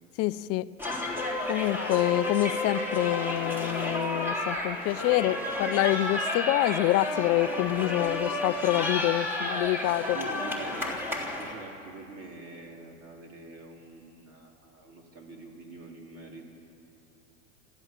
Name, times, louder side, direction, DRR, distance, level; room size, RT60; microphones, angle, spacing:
voice 1, 0.2-0.7 1.5-10.2, left 17 dB, 35° left, 16 dB, 0.5 m, -27 dB
sound 1, 0.8-11.5, left 2 dB, 5° right, 3.8 m, -31 dB
voice 2, 10.0-16.5, right 3 dB, 35° right, 1 dB, 3.8 m, -45 dB
25.5 x 14.5 x 7.4 m, 2.7 s
hypercardioid pair, 110°, 40 cm